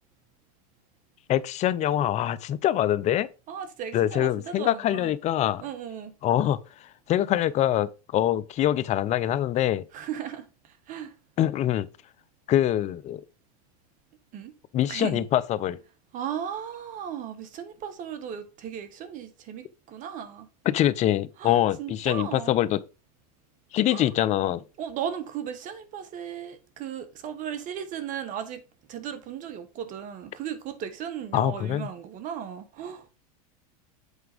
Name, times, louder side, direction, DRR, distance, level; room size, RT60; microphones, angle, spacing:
voice 1, 1.3-3.3 3.9-5.6 6.2-6.6 7.1-9.8 11.4-11.9 12.5-13.2 14.7-15.8 20.6-22.8 23.7-24.6 31.3-31.9, left 12 dB, 35° left, 0.7 m, -24 dB
voice 2, 3.5-5.1 5.6-6.1 9.9-11.1 14.3-14.5 14.9-15.2 16.1-20.5 21.4-22.5 23.9-24.0 24.8-28.6 28.9-33.1, right 8 dB, 40° right, 1.8 m, -36 dB
8.2 x 4.6 x 5.2 m
hypercardioid pair, 110°, 20 cm